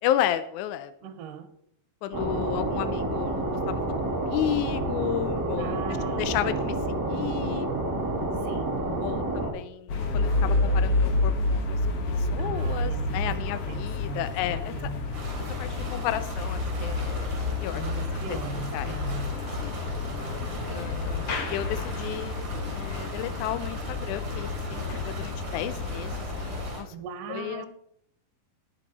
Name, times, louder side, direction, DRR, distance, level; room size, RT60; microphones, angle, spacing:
voice 1, 0.0-0.9 2.0-3.8 4.2-5.8 6.2-6.8 7.1-7.7 9.0-11.8 12.2-14.7 15.6-18.0 18.3-18.4 18.7-19.0 19.6-19.8 20.7-22.4 22.7-26.9 27.3-27.6, left 12 dB, 80° left, 12 dB, 1.7 m, -32 dB
voice 2, 1.0-1.5 5.6-6.6 8.4-8.8 12.4-15.0 17.8-19.3 26.9-27.7, right 7 dB, 75° right, 9 dB, 2.5 m, -39 dB
sound 1, 2.1-9.5, right 1 dB, 10° right, 1.6 m, -29 dB
sound 2, 9.9-26.7, left 3 dB, 55° left, 2.0 m, -29 dB
sound 3, 15.1-26.8, right 3 dB, 35° right, 3.7 m, -38 dB
17.5 x 7.3 x 4.2 m, 0.72 s
omnidirectional pair, 4.0 m